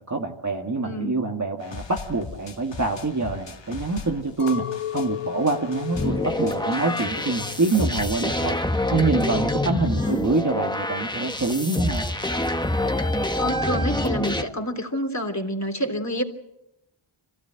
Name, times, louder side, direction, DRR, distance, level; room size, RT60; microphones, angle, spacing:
voice 1, 0.1-4.7 4.9-12.1, right 3 dB, 35° right, 1 dB, 1.8 m, -25 dB
voice 2, 0.8-1.2 9.7-10.2 13.4-16.2, equal, 35° left, 3 dB, 3.2 m, -28 dB
sound 1, 1.6-8.1, left 4 dB, 60° left, 2.0 m, -41 dB
Chink clink, 4.4-8.8 9.1-9.7, left 11 dB, 90° left, 1.1 m, -36 dB
sound 2, 5.9-14.4, left 1 dB, 10° left, 1.4 m, -26 dB
25.5 x 16.5 x 9.1 m, 0.89 s
wide cardioid pair, 80°, 50 cm